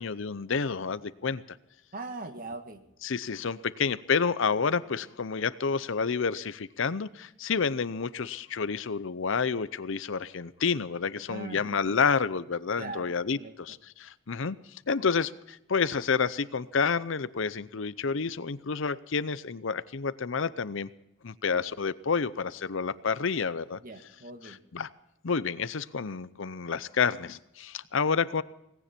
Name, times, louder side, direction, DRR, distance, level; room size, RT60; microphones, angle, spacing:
voice 1, 0.0-1.6 3.0-14.6 14.9-20.9 21.2-23.8 24.4-24.9 25.2-28.4, left 5 dB, 65° left, 16 dB, 0.7 m, -29 dB
voice 2, 1.9-2.8 11.3-12.0 12.8-13.5 23.7-24.6, right 3 dB, 45° right, 7 dB, 1.7 m, -41 dB
18.0 x 17.0 x 4.4 m, 0.83 s
head